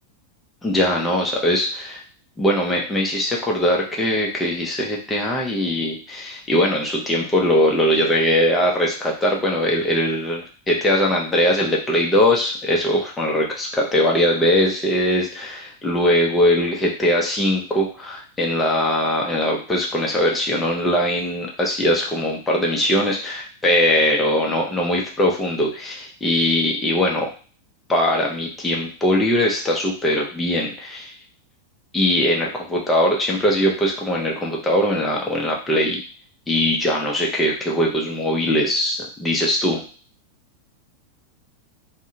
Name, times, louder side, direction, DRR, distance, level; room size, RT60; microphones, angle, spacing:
voice 1, 0.6-2.0 2.4-27.3 27.9-31.1 31.9-36.0 36.5-39.8, left 1 dB, 10° left, -2 dB, 0.6 m, -21 dB
2.6 x 2.1 x 2.6 m, 0.39 s
figure-of-eight pair, 90°, 0 cm